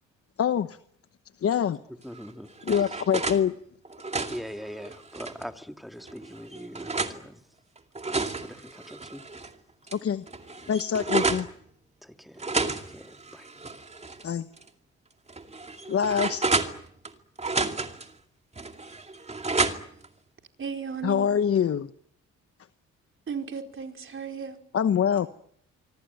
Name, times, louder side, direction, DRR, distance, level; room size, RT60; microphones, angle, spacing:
voice 1, 0.4-0.8 1.4-1.8 2.6-3.5 9.9-10.2 10.7-11.5 14.2-14.5 15.9-16.4 21.0-21.9 24.7-25.3, left 8 dB, 50° left, 1.1 m, -24 dB
voice 2, 1.9-2.5 4.3-7.4 8.0-9.3 12.0-13.5, equal, ahead, 2.0 m, -42 dB
sound 1, 2.1-3.4 3.8-5.5 6.1-7.2 7.8-9.5 9.9-10.0 10.3-11.5 12.4-14.2 14.6-14.7 15.3-17.1 17.4-18.1 18.6-20.1, right 3 dB, 20° right, 2.4 m, -31 dB
voice 3, 20.6-21.3 23.3-24.6, right 6 dB, 40° right, 4.7 m, -35 dB
25.5 x 24.5 x 9.4 m
cardioid pair, 90°, 30 cm